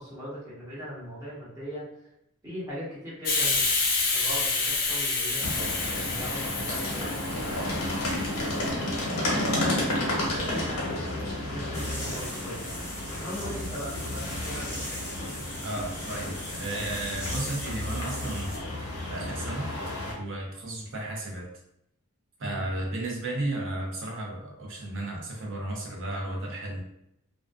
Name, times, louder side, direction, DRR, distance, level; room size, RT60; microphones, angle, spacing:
voice 1, 0.0-1.8 2.4-3.6 4.1-7.8 8.3-11.2 11.5-12.8 13.2-15.0 22.4-22.6, equal, 15° right, -10 dB, 1.1 m, -39 dB
Hiss, 3.3-8.6, left 3 dB, 40° left, 0.5 m, -28 dB
sound 1, 5.4-20.1, left 1 dB, 75° left, 0.8 m, -32 dB
sound 2, 11.7-18.6, left 1 dB, 10° left, 0.8 m, -39 dB
voice 2, 15.6-16.3 16.6-18.6 19.1-19.7 20.2-21.5 22.4-26.8, right 1 dB, 60° right, -1 dB, 0.6 m, -33 dB
2.4 x 2.2 x 2.4 m, 0.80 s
head